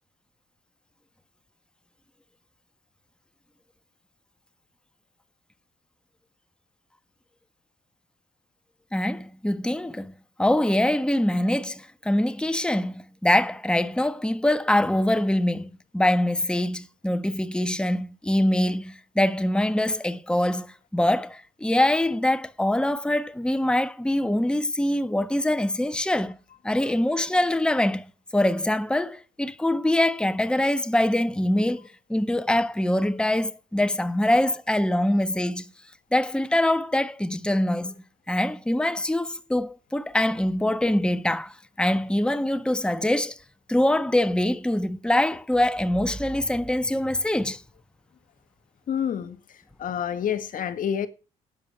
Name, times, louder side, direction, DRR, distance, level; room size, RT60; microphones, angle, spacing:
voice 1, 8.9-10.1 10.4-26.4 26.6-28.1 28.3-35.7 36.1-37.9 38.3-43.4 43.7-47.6, left 1 dB, 5° left, 1.3 m, -24 dB
voice 2, 48.9-49.4 49.8-51.1, left 8 dB, 60° left, 1.8 m, -27 dB
12.5 x 9.7 x 7.4 m
supercardioid pair, 60°, 16 cm